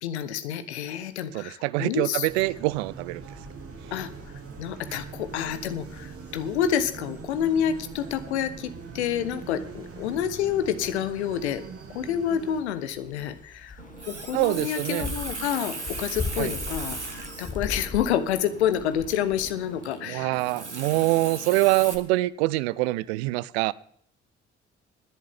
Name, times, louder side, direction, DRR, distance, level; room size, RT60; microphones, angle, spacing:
voice 1, 0.0-2.3 3.9-4.1 4.6-11.6 11.9-13.8 14.1-20.4, left 9 dB, 75° left, 1.0 m, -28 dB
voice 2, 1.3-3.2 4.9-5.0 14.3-15.1 16.4-16.5 20.1-23.7, right 20 dB, 65° right, 0.6 m, -25 dB
sound 1, 2.3-12.6, right 5 dB, 40° right, 1.7 m, -42 dB
sound 2, 3.2-19.8, left 4 dB, 25° left, 1.5 m, -42 dB
Water tap faucet, 13.8-21.9, right 3 dB, 90° right, 1.1 m, -38 dB
19.5 x 11.0 x 3.5 m
figure-of-eight pair, 45°, 34 cm